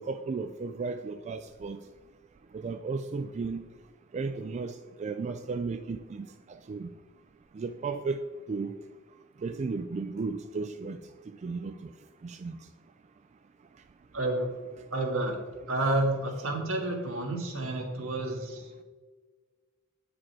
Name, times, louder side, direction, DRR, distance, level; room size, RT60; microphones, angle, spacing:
voice 1, 0.0-1.9 2.5-3.6 4.1-6.9 7.5-8.8 9.4-11.9 12.2-12.7 13.7-13.8, right 4 dB, 35° right, 0.3 m, -35 dB
voice 2, 14.1-14.5 14.9-15.4 15.7-18.8, right 2 dB, 75° right, 1.6 m, -30 dB
8.7 x 5.1 x 4.6 m
head